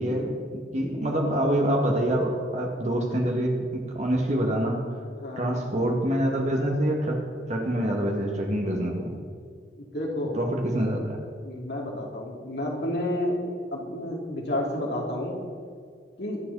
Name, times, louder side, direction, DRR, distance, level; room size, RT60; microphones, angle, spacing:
voice 1, 0.0-4.8 5.4-7.2 7.5-9.2 10.3-11.2, right 1 dB, 35° right, 1 dB, 2.1 m, -26 dB
voice 2, 1.0-1.4 5.2-5.6 9.8-10.3 11.4-13.4 13.7-15.4 16.2-16.4, left 1 dB, 60° left, -2 dB, 2.9 m, -31 dB
23.5 x 8.4 x 4.2 m, 2.1 s
head